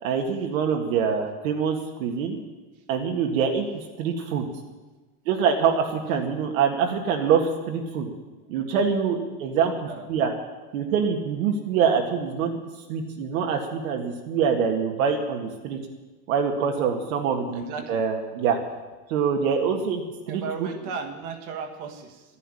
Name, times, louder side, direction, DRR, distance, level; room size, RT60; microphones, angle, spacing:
voice 1, 0.0-2.4 2.9-3.7 4.0-4.5 5.3-8.1 8.5-10.3 10.7-12.6 12.9-15.8 16.3-18.6 19.1-20.7, right 6 dB, 65° right, 3 dB, 1.9 m, -25 dB
voice 2, 17.5-18.0 20.3-22.2, right 5 dB, 40° right, 5 dB, 1.6 m, -35 dB
12.0 x 11.0 x 9.9 m, 1.2 s
supercardioid pair, 170°, 44 cm